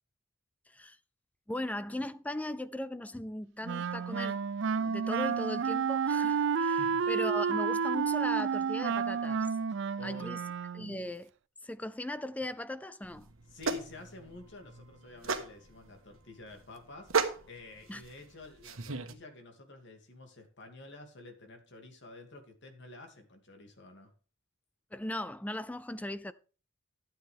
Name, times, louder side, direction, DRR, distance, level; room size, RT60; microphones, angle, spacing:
voice 1, 0.7-1.0 1.5-4.5 4.8-6.8 7.1-9.5 10.0-10.4 10.7-11.3 11.6-13.3 17.9-18.0 24.9-26.3, left 1 dB, 5° left, 0.4 m, -38 dB
Wind instrument woodwind instrument, 3.6-11.0, right 6 dB, 60° right, 0.4 m, -30 dB
voice 2, 6.8-7.1 9.7-10.4 13.5-24.1, left 3 dB, 60° left, 2.6 m, -50 dB
sound 1, 13.0-19.1, right 5 dB, 85° right, 1.4 m, -36 dB
12.5 x 8.8 x 3.5 m
head